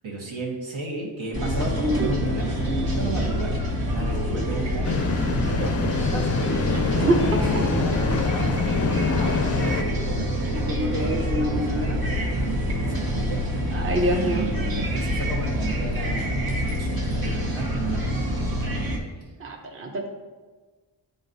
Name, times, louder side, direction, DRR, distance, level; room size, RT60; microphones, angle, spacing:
voice 1, 0.0-4.9 5.6-6.4 7.2-13.4 14.2-19.3, right 2 dB, 80° right, -2 dB, 1.4 m, -35 dB
sound 1, 1.3-19.0, equal, 50° right, 1.0 m, -26 dB
sound 2, 4.8-9.8, left 5 dB, 35° left, 0.4 m, -25 dB
voice 2, 13.7-14.4 19.4-20.1, right 2 dB, 30° right, 2 dB, 0.7 m, -24 dB
9.5 x 4.0 x 2.6 m, 1.3 s
wide cardioid pair, 95°, 46 cm